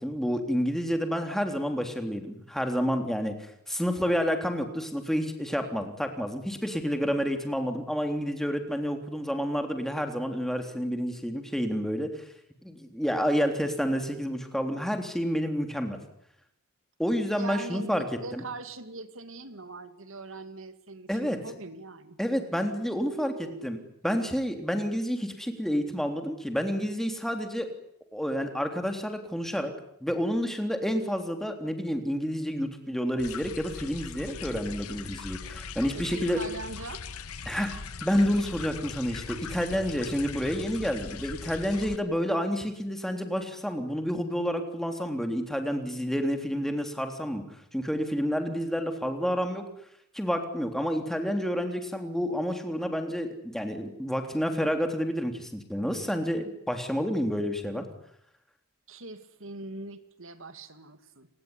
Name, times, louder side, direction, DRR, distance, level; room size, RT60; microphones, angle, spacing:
voice 1, 0.0-3.3 3.7-12.1 12.6-16.0 17.0-18.0 18.3-18.4 21.1-21.4 22.2-23.8 24.0-27.7 28.1-29.7 30.0-36.4 37.5-37.7 38.0-47.4 47.7-49.7 50.1-57.9, equal, ahead, 5 dB, 3.5 m, -29 dB
voice 2, 17.4-22.2 22.9-23.7 36.0-37.0 58.9-61.3, right 2 dB, 65° right, 10 dB, 2.5 m, -41 dB
sound 1, 33.2-42.0, left 5 dB, 85° left, 1.3 m, -40 dB
29.5 x 20.0 x 9.9 m, 0.75 s
head